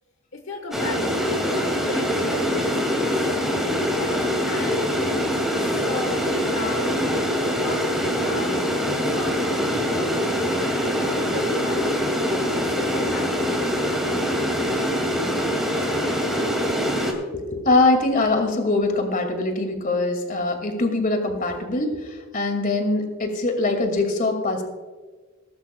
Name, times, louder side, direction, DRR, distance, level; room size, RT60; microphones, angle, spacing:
voice 1, 0.3-3.2 4.0-10.2 10.9-14.1, left 3 dB, 70° left, 4 dB, 1.3 m, -36 dB
sound 1, 0.7-17.1, equal, ahead, 2.3 m, -24 dB
voice 2, 17.5-24.6, left 2 dB, 45° left, 5 dB, 2.3 m, -22 dB
20.0 x 12.0 x 2.3 m, 1.4 s
head